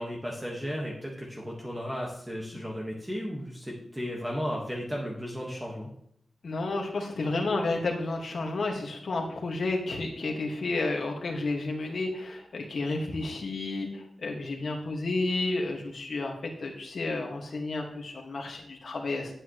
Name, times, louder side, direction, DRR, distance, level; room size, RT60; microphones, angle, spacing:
voice 1, 0.0-5.9, equal, 10° right, -2 dB, 1.6 m, -35 dB
voice 2, 6.4-16.3 16.6-19.3, left 2 dB, 60° left, 1 dB, 1.9 m, -31 dB
9.8 x 8.9 x 3.2 m, 0.70 s
wide cardioid pair, 110°, 0 cm